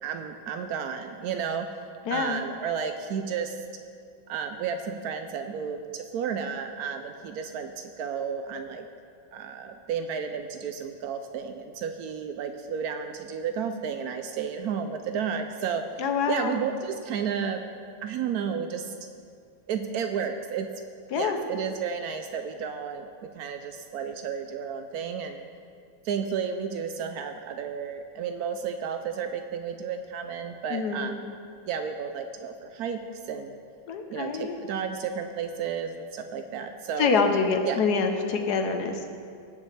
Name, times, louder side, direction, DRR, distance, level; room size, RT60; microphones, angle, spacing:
voice 1, 0.0-1.7 2.1-3.6 4.3-8.9 9.3-15.8 16.3-17.6 18.0-18.9 19.7-20.7 21.1-25.4 26.0-31.3 31.7-33.6 34.1-37.1 37.6-37.8, right 7 dB, 90° right, 6 dB, 0.8 m, -32 dB
voice 2, 2.1-2.4 16.0-16.6 21.1-21.4 30.7-31.1 33.9-34.6 37.0-39.1, left 5 dB, 60° left, 5 dB, 1.2 m, -26 dB
18.0 x 7.4 x 3.3 m, 2.2 s
omnidirectional pair, 2.2 m